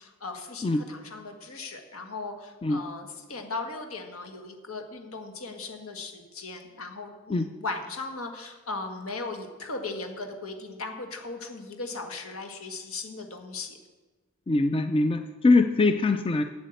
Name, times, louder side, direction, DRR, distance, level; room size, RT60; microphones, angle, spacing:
voice 1, 0.0-13.8, left 3 dB, 75° left, 4 dB, 1.7 m, -37 dB
voice 2, 14.5-16.4, left 3 dB, 25° left, 8 dB, 0.4 m, -23 dB
8.3 x 8.3 x 7.9 m, 1.3 s
head